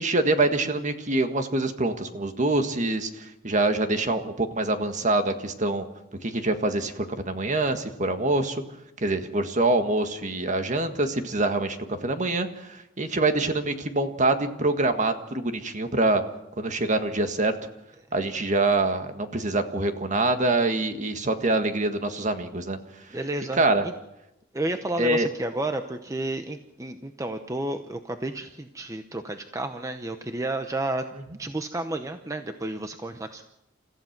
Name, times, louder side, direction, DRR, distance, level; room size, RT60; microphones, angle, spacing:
voice 1, 0.0-5.8 6.2-8.6 9.0-16.2 16.6-17.5 18.1-22.8 23.6-23.9 25.0-25.3, right 2 dB, 40° right, 7 dB, 1.6 m, -25 dB
voice 2, 23.1-23.9 24.5-31.1 31.4-33.4, right 2 dB, 15° right, 7 dB, 0.8 m, -31 dB
29.5 x 15.0 x 6.0 m, 0.88 s
head